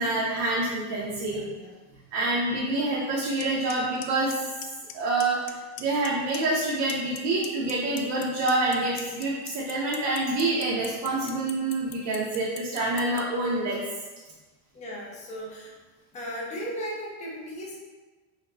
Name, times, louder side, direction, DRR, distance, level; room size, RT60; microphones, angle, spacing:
voice 1, 0.0-1.5 2.1-4.4 4.9-13.8, right 2 dB, 60° right, -5 dB, 0.8 m, -27 dB
voice 2, 1.3-1.7 14.7-15.8 16.1-17.8, equal, 15° left, -3 dB, 0.5 m, -36 dB
Clock, 3.4-3.5 3.7-4.0 4.3-4.9 5.2-5.5 5.8-6.6 6.9-13.2, left 14 dB, 75° left, 0.5 m, -38 dB
4.2 x 2.1 x 4.0 m, 1.3 s
cardioid pair, 160°, 47 cm